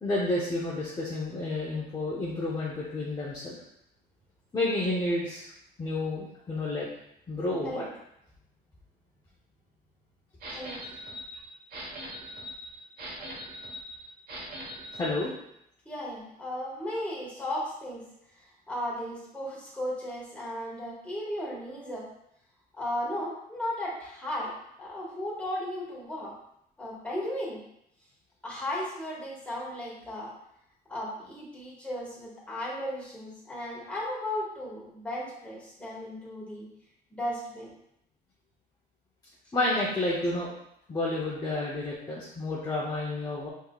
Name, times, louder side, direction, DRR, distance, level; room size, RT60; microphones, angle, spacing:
voice 1, 0.0-3.6 4.5-5.5 5.8-6.9 7.3-7.8 13.2-13.3 14.9-15.3 39.5-40.5 40.9-43.5, left 2 dB, 25° left, -6 dB, 0.8 m, -30 dB
sound 1, 10.4-15.2, equal, 60° right, 1.2 m, -41 dB
voice 2, 10.5-10.8 11.8-11.9 15.8-18.0 18.7-22.0 22.8-26.3 26.8-27.6 28.4-30.3 30.9-36.7 37.1-37.7, left 1 dB, 5° left, -6 dB, 1.7 m, -35 dB
5.2 x 3.7 x 2.4 m, 0.76 s
cardioid pair, 125°, 17 cm